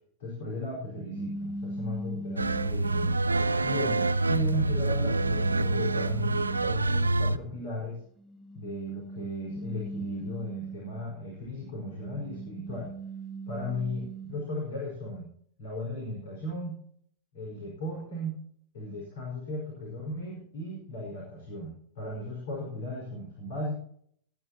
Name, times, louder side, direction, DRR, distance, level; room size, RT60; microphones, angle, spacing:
voice 1, 0.2-3.2 3.6-8.0 8.5-12.9 13.5-15.3 15.6-16.8 17.3-18.4 18.7-23.8, left 1 dB, 60° left, -2 dB, 5.0 m, -36 dB
sound 1, 1.1-3.3 3.9-7.0 8.2-11.2 11.6-14.6, right 1 dB, 5° right, 1.4 m, -40 dB
sound 2, 2.4-7.4, right 2 dB, 80° right, 0.4 m, -26 dB
18.5 x 10.5 x 3.0 m, 0.62 s
figure-of-eight pair, 90°, 0 cm